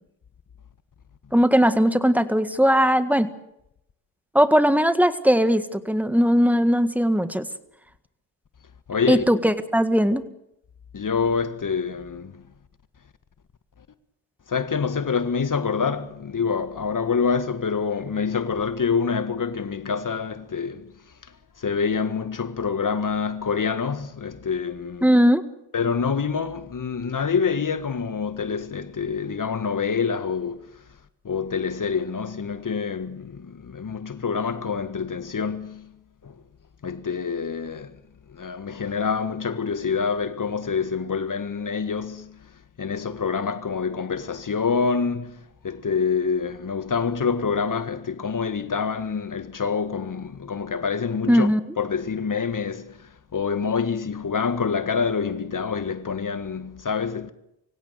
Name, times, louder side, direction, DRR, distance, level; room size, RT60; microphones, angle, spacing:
voice 1, 1.3-3.3 4.3-7.5 9.1-10.2 25.0-25.4 51.3-51.6, equal, 5° right, 1.9 m, -19 dB
voice 2, 8.9-9.2 10.9-12.4 14.5-20.9 21.2-25.1 25.7-30.6 31.2-35.9 36.2-36.4 36.8-38.0 38.3-42.5 42.8-51.5 51.8-57.3, left 5 dB, 40° left, 1.7 m, -26 dB
24.5 x 16.5 x 8.1 m
supercardioid pair, 55°, 46 cm